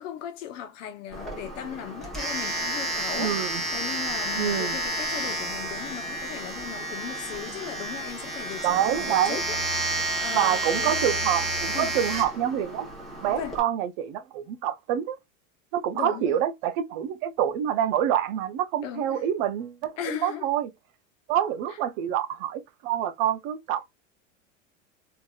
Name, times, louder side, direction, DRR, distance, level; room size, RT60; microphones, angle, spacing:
voice 1, 0.0-11.0 11.7-12.0 13.3-13.6 15.9-16.4 18.8-19.2 20.0-20.5 21.7-21.8, left 10 dB, 75° left, 0.9 m, -38 dB
Domestic sounds home sounds, 1.1-13.6, right 2 dB, ahead, 0.9 m, -31 dB
voice 2, 3.2-3.6 4.4-4.8 8.6-9.4 10.3-12.9 13.2-15.2 15.7-20.7 21.3-23.9, right 10 dB, 40° right, 0.4 m, -27 dB
3.1 x 2.7 x 2.3 m
supercardioid pair, 145°, 38 cm